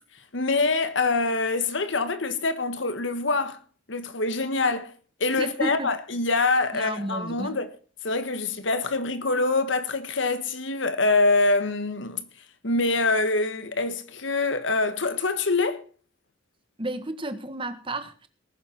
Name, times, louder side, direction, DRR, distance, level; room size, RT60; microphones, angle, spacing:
voice 1, 0.3-3.6 3.9-4.9 5.2-7.7 8.0-12.2 12.6-15.8, left 3 dB, 70° left, 1.5 m, -25 dB
voice 2, 5.4-5.9 6.7-7.6 16.8-18.3, right 2 dB, 25° right, 1.5 m, -32 dB
19.5 x 7.3 x 5.8 m
head